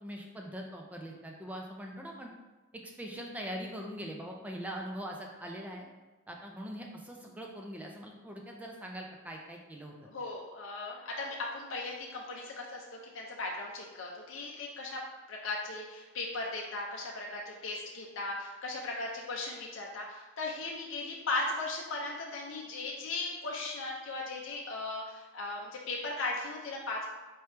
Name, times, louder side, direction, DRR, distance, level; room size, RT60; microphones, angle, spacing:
voice 1, 0.0-2.3 3.0-5.9 6.3-10.0, equal, 5° right, 0 dB, 0.4 m, -42 dB
voice 2, 10.0-12.8 13.1-15.0 15.3-27.1, left 2 dB, 65° left, -1 dB, 0.5 m, -37 dB
4.4 x 3.0 x 3.2 m, 1.2 s
head